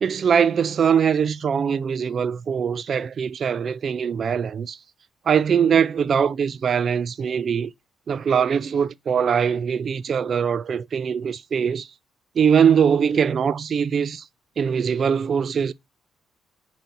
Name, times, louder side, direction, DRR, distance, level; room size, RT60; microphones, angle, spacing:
voice 1, 0.0-4.8 5.3-7.7 8.1-11.9 12.4-14.3 14.6-15.7, right 7 dB, 50° right, 0.3 m, -22 dB
5.0 x 2.7 x 2.8 m
cardioid pair, 90°, 0 cm